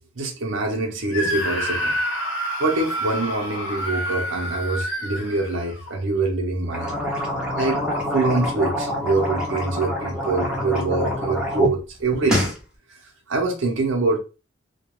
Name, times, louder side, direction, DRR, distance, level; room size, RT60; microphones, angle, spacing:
voice 1, 0.2-2.0 2.6-7.0 7.6-7.8 8.1-12.5 13.3-14.2, right 3 dB, 60° right, 0.6 m, -24 dB
Screaming, 1.1-6.0, equal, 60° left, 0.6 m, -28 dB
sound 1, 6.6-11.7 12.0-12.6, left 1 dB, 5° right, 0.5 m, -26 dB
2.3 x 2.2 x 3.0 m
head